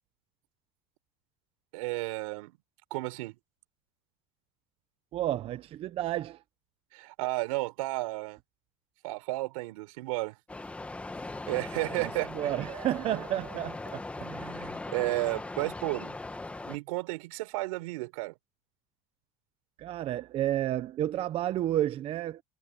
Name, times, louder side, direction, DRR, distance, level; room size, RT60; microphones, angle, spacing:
voice 1, 1.7-2.6 2.9-3.4 6.9-8.4 9.0-10.4 11.5-12.5 14.2-16.2 16.6-18.3, right 22 dB, 85° right, 4.4 m, -33 dB
voice 2, 5.1-6.4 12.0-14.0 19.8-22.4, right 12 dB, 35° right, 0.7 m, -31 dB
sound 1, 10.5-16.8, left 2 dB, 5° left, 1.1 m, -39 dB
cardioid pair, 155°, 18 cm